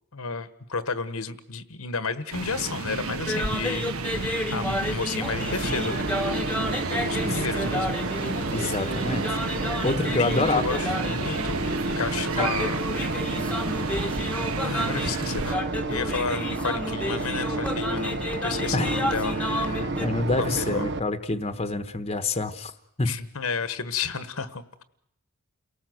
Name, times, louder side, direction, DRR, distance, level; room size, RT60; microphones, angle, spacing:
voice 1, 0.1-6.1 6.9-7.9 10.2-11.7 12.0-12.9 14.6-15.6 15.9-19.4 20.4-20.8 23.0-24.6, left 4 dB, 70° left, 12 dB, 1.3 m, -32 dB
sound 1, 2.3-15.5, right 3 dB, 70° right, 1.1 m, -33 dB
sound 2, 3.1-20.0, left 1 dB, 5° left, 1.2 m, -32 dB
sound 3, 5.2-21.0, right 2 dB, 50° right, 1.0 m, -31 dB
voice 2, 8.5-9.3 9.8-10.6 12.4-12.5 18.7-19.1 19.5-22.7 23.0-23.1, left 2 dB, 25° left, 9 dB, 1.1 m, -27 dB
29.0 x 18.0 x 7.8 m, 0.78 s
head